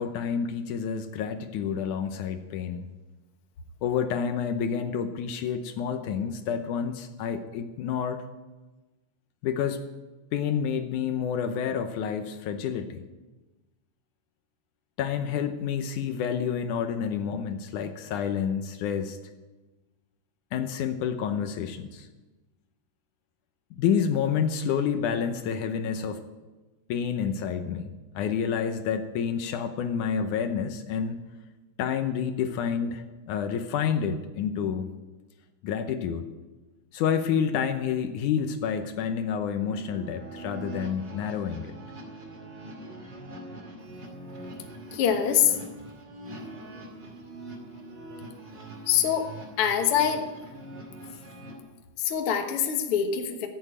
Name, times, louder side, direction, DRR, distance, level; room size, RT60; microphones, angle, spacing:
voice 1, 0.0-2.9 3.8-8.2 9.4-9.8 10.3-13.0 15.0-19.2 20.5-22.1 23.8-26.2 26.9-31.2 31.8-34.9 35.6-36.3 36.9-41.7, left 7 dB, 80° left, 8 dB, 2.3 m, -29 dB
sound 1, 39.6-51.6, right 2 dB, 35° right, 3.1 m, -43 dB
voice 2, 44.6-45.6 48.9-49.3 49.6-50.2 52.0-53.5, left 9 dB, 55° left, 5 dB, 1.8 m, -24 dB
15.5 x 8.3 x 8.8 m, 1.2 s
omnidirectional pair, 3.6 m